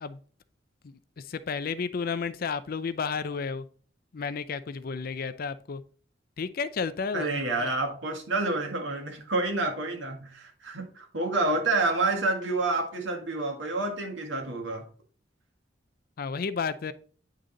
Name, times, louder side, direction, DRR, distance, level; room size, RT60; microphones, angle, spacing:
voice 1, 0.8-3.7 4.1-5.8 6.4-7.3 7.6-7.7 16.2-16.9, left 5 dB, 50° left, 0.5 m, -32 dB
voice 2, 7.1-14.9, right 2 dB, 80° right, 1.7 m, -28 dB
9.3 x 3.8 x 3.8 m
head